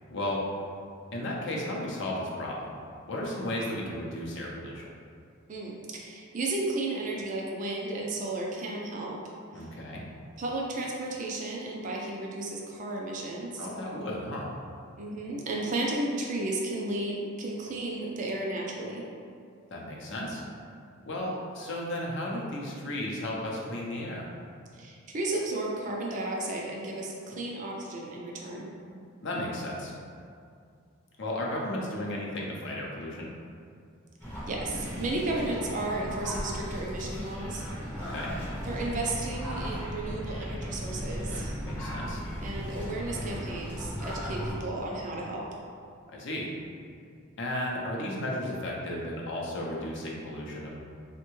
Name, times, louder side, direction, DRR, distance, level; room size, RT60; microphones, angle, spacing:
voice 1, 1.1-2.8 3.1-4.9 9.5-10.0 13.6-14.5 19.7-20.4 21.1-24.3 29.2-29.9 31.2-33.3 38.1-38.3 41.6-42.2 46.1-46.5 47.4-50.7, left 1 dB, 60° left, -3 dB, 0.5 m, -34 dB
voice 2, 5.5-9.2 10.4-13.7 15.0-19.0 24.8-28.7 34.5-37.6 38.6-41.6 42.4-45.4, right 2 dB, 35° right, -2 dB, 0.4 m, -33 dB
sound 1, 34.2-44.5, equal, 10° left, 0.6 m, -36 dB
3.4 x 2.1 x 3.0 m, 2.3 s
head